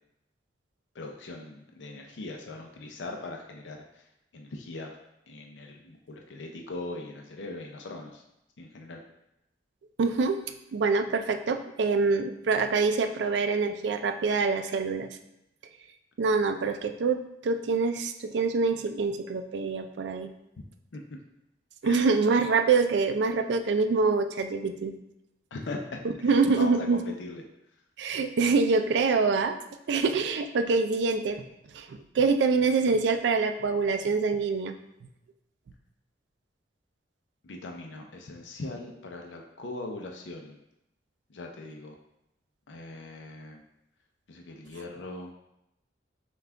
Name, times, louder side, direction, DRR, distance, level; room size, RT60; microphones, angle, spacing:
voice 1, 0.9-5.0 5.3-8.2 8.6-9.0 20.9-21.2 21.8-22.0 25.5-27.4 37.4-40.6 41.3-42.0 42.7-43.6 44.3-45.3, left 2 dB, 85° left, 2 dB, 0.5 m, -40 dB
voice 2, 10.0-10.4 10.7-15.2 16.2-20.3 21.8-25.0 26.2-27.0 28.0-29.6 29.9-31.4 31.7-34.8, right 4 dB, 70° right, 8 dB, 0.4 m, -25 dB
5.6 x 2.4 x 3.4 m, 0.85 s
head